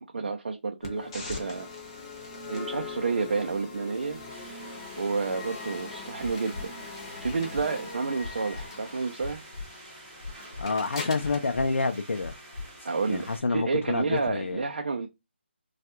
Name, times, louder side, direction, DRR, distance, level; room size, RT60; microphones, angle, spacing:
voice 1, 0.1-1.7 2.5-4.2 5.0-6.7 7.2-9.4 12.8-15.1, right 4 dB, 55° right, 0.5 m, -30 dB
sound 1, 0.8-12.8, left 4 dB, 25° left, 0.7 m, -41 dB
sound 2, 4.3-13.4, right 2 dB, 15° right, 0.9 m, -49 dB
sound 3, 6.2-6.7 7.2-7.7 8.2-8.7 9.2-9.7 10.2-10.7 11.2-11.7 12.2-12.7 13.2-13.3, left 3 dB, 60° left, 0.8 m, -38 dB
voice 2, 10.6-12.3 13.1-14.6, left 3 dB, 90° left, 0.4 m, -28 dB
3.2 x 2.3 x 2.9 m
figure-of-eight pair, 165°, 6 cm